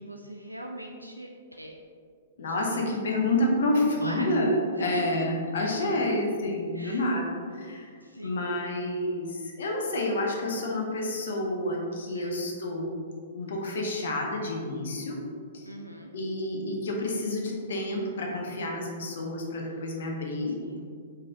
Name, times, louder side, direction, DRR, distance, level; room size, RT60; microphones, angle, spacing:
voice 1, 0.0-1.8 2.5-2.8 3.1-3.3 4.0-4.5 4.8-5.0 6.7-7.1 8.0-8.5 12.1-12.4 15.7-16.1 20.6-20.9, equal, 90° right, 1 dB, 0.3 m, -41 dB
voice 2, 2.4-7.9 8.2-12.9 13.3-15.2 15.5-15.7 16.1-20.6, left 1 dB, 60° left, 0 dB, 0.8 m, -29 dB
4.7 x 3.8 x 2.9 m, 2.1 s
figure-of-eight pair, 110°, 0 cm